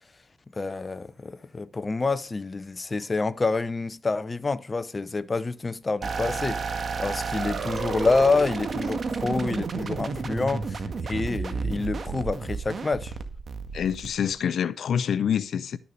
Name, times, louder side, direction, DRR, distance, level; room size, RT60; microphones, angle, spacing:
voice 1, 0.5-10.8 11.1-13.1, left 3 dB, 30° left, 0.8 m, -27 dB
sound 1, 6.0-14.5, right 4 dB, 55° right, 1.8 m, -31 dB
voice 2, 13.7-15.8, left 8 dB, 75° left, 0.6 m, -26 dB
12.5 x 7.1 x 5.3 m
cardioid pair, 75°, 0 cm